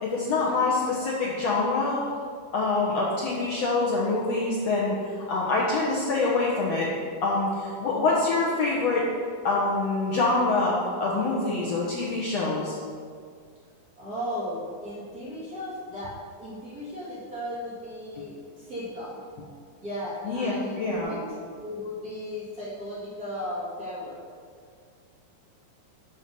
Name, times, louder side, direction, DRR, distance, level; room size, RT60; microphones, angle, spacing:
voice 1, 0.0-2.1 2.5-6.9 7.2-9.1 9.4-12.7 18.2-18.3 20.2-21.1, left 3 dB, 85° left, -5 dB, 1.4 m, -25 dB
voice 2, 14.0-16.1 16.4-19.2 19.8-24.2, left 1 dB, 30° right, -9 dB, 1.9 m, -36 dB
10.5 x 6.1 x 5.4 m, 2.1 s
omnidirectional pair, 4.6 m